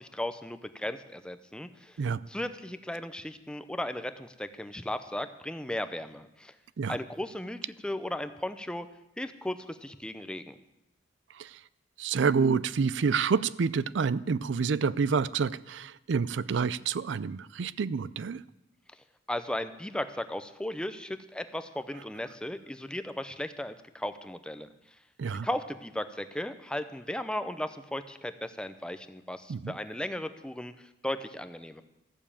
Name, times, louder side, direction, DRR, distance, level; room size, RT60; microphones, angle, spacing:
voice 1, 0.0-2.0 2.3-6.5 6.9-8.9 9.2-10.5 19.3-24.7 25.4-31.8, left 1 dB, 5° left, 10 dB, 0.6 m, -36 dB
voice 2, 12.0-18.4 25.2-25.5 29.5-29.7, right 5 dB, 65° right, 19 dB, 0.4 m, -28 dB
14.0 x 7.0 x 8.6 m, 0.91 s
head